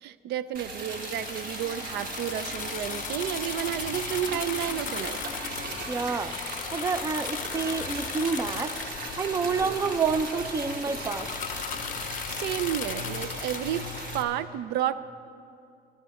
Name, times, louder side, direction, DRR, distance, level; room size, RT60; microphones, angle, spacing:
voice 1, 0.0-5.2 12.3-13.9 14.1-15.0, right 11 dB, 75° right, 15 dB, 0.4 m, -31 dB
Liquid, 0.5-14.2, right 2 dB, 55° right, 1.4 m, -37 dB
sound 1, 0.9-14.2, left 10 dB, 50° left, 0.5 m, -37 dB
voice 2, 5.9-6.4 6.7-8.8 9.2-11.3, right 5 dB, 20° right, 14 dB, 0.4 m, -28 dB
18.0 x 11.5 x 4.2 m, 2.5 s
cardioid pair, 110°, 17 cm